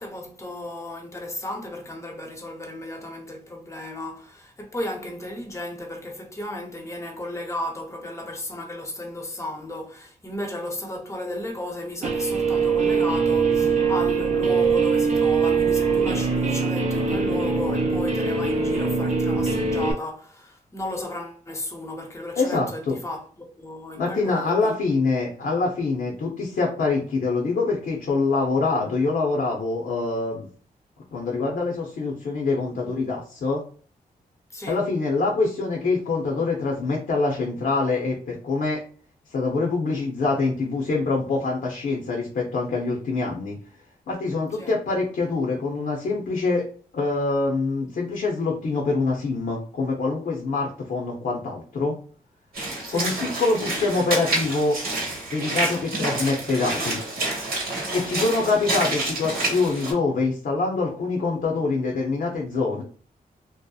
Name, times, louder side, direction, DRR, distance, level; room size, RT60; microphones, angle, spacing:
voice 1, 0.0-24.8 34.5-34.8 44.6-44.7 52.9-53.1 58.3-58.5, left 1 dB, 20° left, 0.7 m, -34 dB
Guitar, 12.0-19.9, right 5 dB, 50° right, 0.5 m, -22 dB
voice 2, 22.3-23.0 24.0-30.5 31.1-33.6 34.7-38.8 39.3-43.6 44.1-46.7 46.9-51.9 52.9-54.8 55.3-57.0 57.9-62.8, left 3 dB, 65° left, 0.6 m, -25 dB
Walk footsteps / Splash splatter, 52.5-59.9, right 2 dB, 80° right, 1.0 m, -28 dB
2.7 x 2.0 x 2.3 m
cardioid pair, 70°, 16 cm